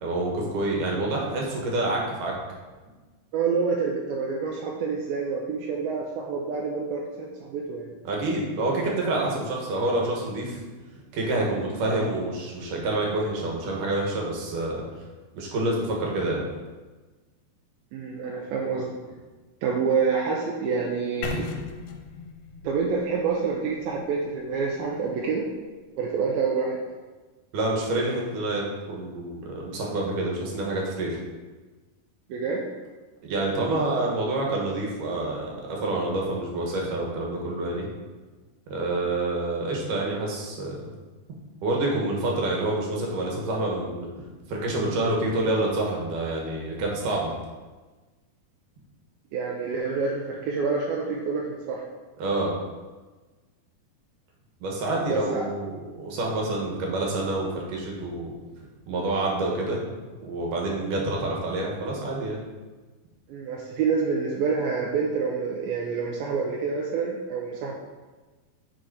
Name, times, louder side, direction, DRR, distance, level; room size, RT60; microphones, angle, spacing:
voice 1, 0.0-2.3 8.0-10.6 11.1-14.8 15.3-16.5 27.5-31.2 33.2-37.9 38.7-40.8 41.6-44.1 44.5-47.3 52.2-52.5 54.6-58.3 58.9-59.8 60.2-62.4, right 2 dB, 65° right, -2 dB, 2.7 m, -27 dB
voice 2, 3.3-8.0 17.9-18.9 19.6-21.5 22.6-25.5 26.0-26.8 32.3-32.6 49.3-51.4 51.7-51.8 55.1-55.4 63.3-67.7, right 5 dB, 80° right, -2 dB, 2.3 m, -27 dB
sound 1, 21.2-25.2, left 4 dB, 80° left, 2.4 m, -38 dB
6.3 x 5.7 x 5.0 m, 1.3 s
omnidirectional pair, 4.6 m